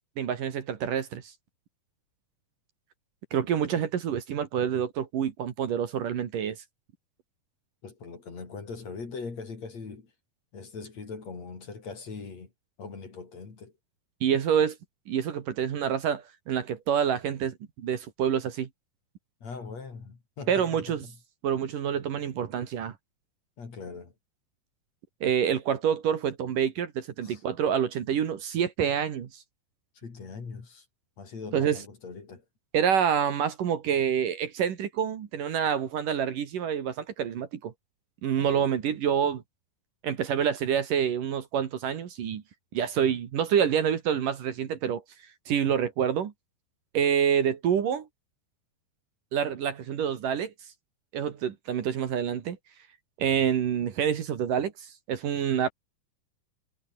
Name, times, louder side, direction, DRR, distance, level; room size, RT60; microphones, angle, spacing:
voice 1, 0.2-1.2 3.3-6.6 14.2-14.8 15.1-18.7 20.5-21.0 21.4-22.9 25.2-29.3 31.5-31.8 32.7-37.7 38.2-39.4 40.0-42.4 42.7-45.0 45.5-46.3 46.9-48.1 49.3-50.5 51.1-52.6 53.2-55.7, right 8 dB, 60° right, 3.4 m, -27 dB
voice 2, 7.8-10.1 10.5-12.5 12.8-13.7 19.4-21.2 23.6-24.1 27.2-27.4 29.9-30.9 31.2-32.4 38.4-38.7, left 4 dB, 45° left, 5.1 m, -41 dB
omnidirectional pair, 4.4 m